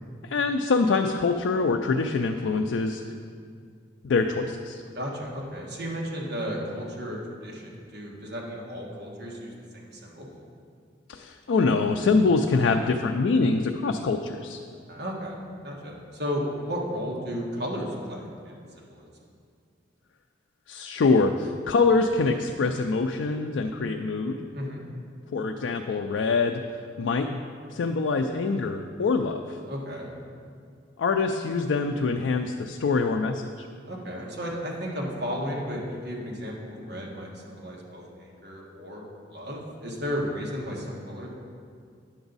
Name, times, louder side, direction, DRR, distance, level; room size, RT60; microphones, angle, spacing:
voice 1, 0.2-3.0 4.0-4.8 11.1-14.6 20.7-24.4 25.3-26.6 27.0-27.4 27.7-29.6 31.0-33.7, left 4 dB, 85° left, 4 dB, 0.4 m, -24 dB
voice 2, 4.9-10.3 14.9-15.4 15.6-19.1 24.5-24.8 29.7-30.1 33.9-39.0 39.3-41.3, equal, 60° right, -2 dB, 1.5 m, -34 dB
9.5 x 7.0 x 4.0 m, 2.2 s
head